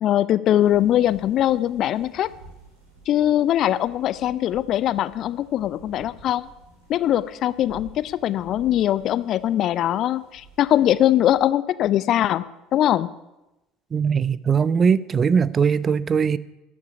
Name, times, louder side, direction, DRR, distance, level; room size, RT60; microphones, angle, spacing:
voice 1, 0.0-2.3 3.1-6.5 6.9-12.4 12.7-13.1, left 12 dB, 50° left, 0.6 m, -21 dB
sound 1, 0.6-11.5, right 3 dB, 80° right, 5.7 m, -50 dB
voice 2, 13.9-16.4, right 6 dB, 35° right, 0.6 m, -20 dB
14.0 x 8.8 x 9.8 m
figure-of-eight pair, 65°, 0 cm